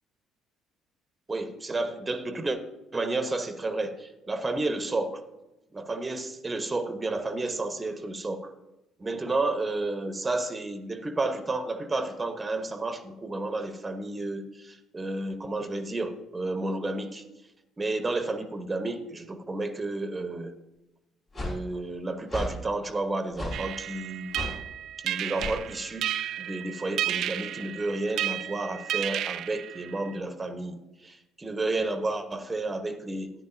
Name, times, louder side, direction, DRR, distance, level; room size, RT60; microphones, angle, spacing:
voice 1, 1.3-2.6 2.9-5.2 5.7-8.5 9.0-17.2 17.8-20.5 21.3-24.4 25.0-33.3, right 2 dB, 25° right, 10 dB, 1.0 m, -31 dB
sound 1, 21.3-21.6 22.3-22.5 23.4-23.6 24.3-24.6 25.4-25.6, left 2 dB, 45° left, 4.2 m, -33 dB
sound 2, 23.5-30.2, right 11 dB, 60° right, 0.3 m, -33 dB
13.5 x 10.0 x 2.7 m, 0.97 s
hypercardioid pair, 50°, 0 cm